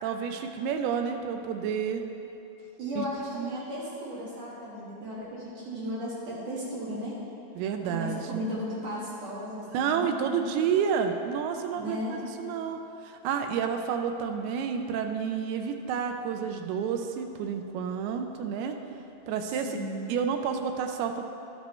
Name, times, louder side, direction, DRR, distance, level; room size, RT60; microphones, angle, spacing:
voice 1, 0.0-2.0 3.0-3.1 3.3-3.6 7.6-8.5 9.7-12.8 13.0-18.8 19.3-19.7 20.1-21.2, right 7 dB, 85° right, 5 dB, 2.6 m, -30 dB
voice 2, 2.8-7.1 7.9-10.4 11.8-12.2 19.5-20.1, equal, 60° right, -7 dB, 2.8 m, -35 dB
11.5 x 8.3 x 3.1 m, 3.0 s
omnidirectional pair, 4.6 m